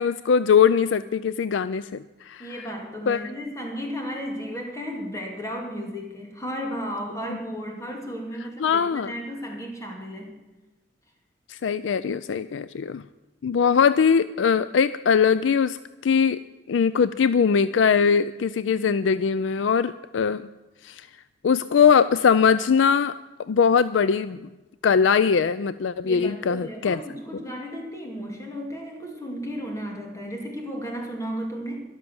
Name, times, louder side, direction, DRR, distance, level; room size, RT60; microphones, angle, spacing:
voice 1, 0.0-2.7 3.1-3.3 8.6-9.1 11.5-13.0 13.4-16.4 16.7-20.5 20.8-21.1 21.4-23.1 23.5-24.4 24.8-27.0, left 6 dB, 85° left, 15 dB, 0.4 m, -21 dB
voice 2, 2.4-10.3 26.0-31.8, equal, 15° left, 1 dB, 2.5 m, -34 dB
13.0 x 12.0 x 7.0 m, 1.1 s
head